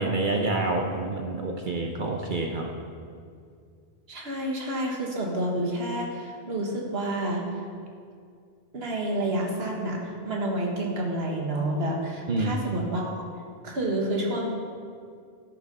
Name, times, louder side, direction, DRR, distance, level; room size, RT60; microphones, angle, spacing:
voice 1, 0.0-2.7 12.3-12.6, right 2 dB, 55° right, 1 dB, 0.9 m, -27 dB
voice 2, 4.1-7.4 8.7-13.3 13.6-14.5, right 1 dB, 75° right, -1 dB, 1.7 m, -29 dB
12.5 x 6.0 x 5.4 m, 2.3 s
omnidirectional pair, 1.1 m